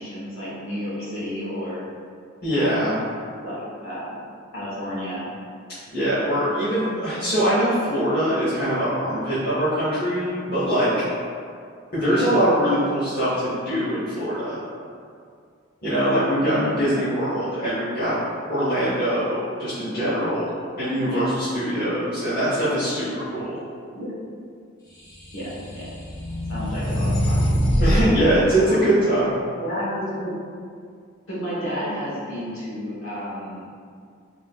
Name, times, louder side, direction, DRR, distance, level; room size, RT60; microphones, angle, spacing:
voice 1, 0.0-1.9 2.5-3.0 3.4-4.2 4.5-5.3 12.0-12.2 16.4-16.7 21.1-21.2 23.9-24.1 25.3-25.5 25.7-25.9 26.5-27.5 28.6-28.8 29.6-30.4 31.3-33.7, equal, 80° left, -9 dB, 1.0 m, -31 dB
voice 2, 2.4-2.9 5.9-10.9 11.9-14.6 15.8-18.1 18.5-20.5 20.8-23.6 27.8-29.3, right 1 dB, 50° left, -14 dB, 0.9 m, -22 dB
sound 1, 25.1-28.1, equal, 20° left, 0.5 m, -23 dB
3.5 x 2.7 x 2.2 m, 2.2 s
head